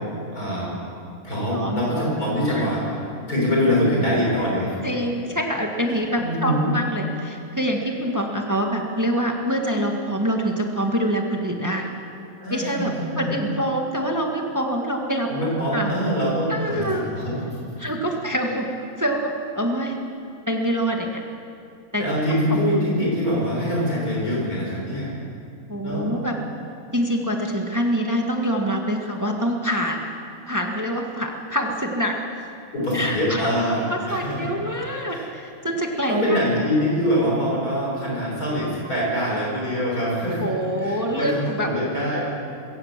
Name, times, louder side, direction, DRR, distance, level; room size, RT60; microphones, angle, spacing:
voice 1, 0.3-0.8 1.2-3.0 3.3-4.8 6.2-6.7 12.4-13.3 15.3-17.7 22.0-25.1 25.8-26.1 32.7-34.5 35.1-35.3 36.1-40.5 40.8-42.2, equal, 85° left, -4 dB, 6.9 m, -24 dB
voice 2, 1.5-1.9 2.5-2.7 4.8-11.9 12.5-15.9 16.5-17.1 17.8-18.7 19.0-20.0 20.5-21.2 21.9-22.0 25.7-26.4 26.9-30.1 30.5-32.2 32.9-33.6 33.9-36.4 40.4-41.7, equal, 10° right, 1 dB, 1.7 m, -25 dB
22.5 x 16.5 x 7.5 m, 2.5 s
omnidirectional pair, 1.5 m